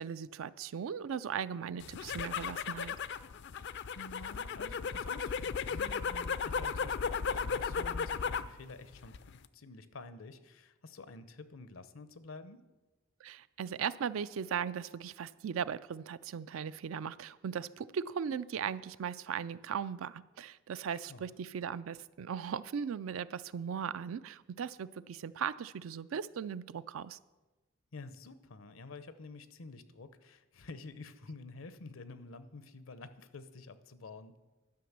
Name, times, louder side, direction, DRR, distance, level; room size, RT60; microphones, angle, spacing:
voice 1, 0.0-3.0 13.2-27.2, right 7 dB, 75° right, 16 dB, 0.4 m, -38 dB
sound 1, 1.8-8.6 8.9-9.5, left 6 dB, 60° left, 0.4 m, -35 dB
voice 2, 3.6-12.6 20.9-21.2 27.9-34.4, left 3 dB, 80° left, 13 dB, 0.7 m, -49 dB
11.5 x 6.0 x 7.3 m, 1.2 s
head